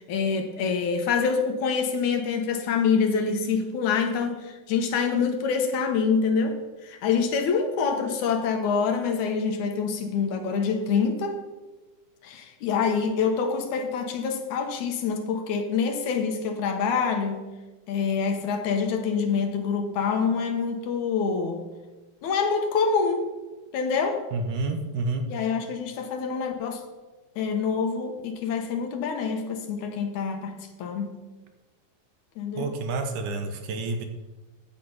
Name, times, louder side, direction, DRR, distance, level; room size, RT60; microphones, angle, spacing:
voice 1, 0.1-11.4 12.2-17.5 17.9-21.7 22.2-23.3 23.7-24.2 25.3-26.8 27.4-31.2 32.4-32.7, left 5 dB, 70° left, 4 dB, 2.4 m, -26 dB
voice 2, 24.3-25.2 32.6-34.0, right 3 dB, 75° right, 5 dB, 2.4 m, -29 dB
10.0 x 7.5 x 5.5 m, 1.2 s
omnidirectional pair, 3.8 m